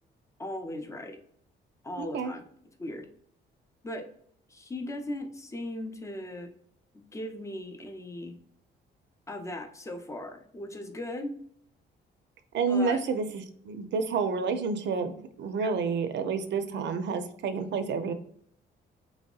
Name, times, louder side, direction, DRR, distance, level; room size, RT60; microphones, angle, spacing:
voice 1, 0.4-1.2 1.8-2.4 2.8-3.1 3.8-4.1 4.5-6.5 7.1-8.4 9.3-11.4 12.7-13.0 15.6-15.7, left 1 dB, 15° left, 6 dB, 0.5 m, -38 dB
voice 2, 2.0-2.3 12.5-18.1, right 5 dB, 65° right, 9 dB, 0.5 m, -29 dB
3.0 x 2.7 x 2.3 m, 0.63 s
cardioid pair, 90°, 20 cm